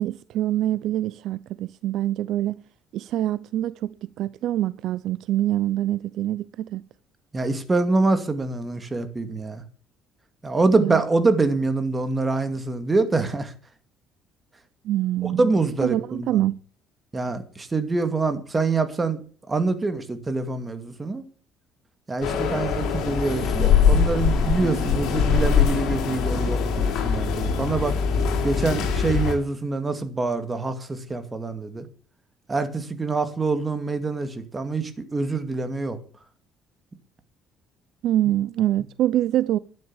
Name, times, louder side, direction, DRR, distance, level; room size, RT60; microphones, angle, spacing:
voice 1, 0.0-2.6 2.9-6.8 10.7-11.0 14.8-15.5 15.8-16.5 38.0-39.6, right 13 dB, 65° right, 0.6 m, -25 dB
voice 2, 7.3-9.6 10.4-13.5 15.2-16.3 17.1-19.2 19.5-21.2 22.1-27.9 28.4-31.9 32.5-36.0, right 3 dB, 20° right, 2.2 m, -25 dB
sound 1, 22.2-29.3, left 6 dB, 70° left, 4.9 m, -22 dB
12.5 x 9.8 x 7.3 m
cardioid pair, 125°, 0 cm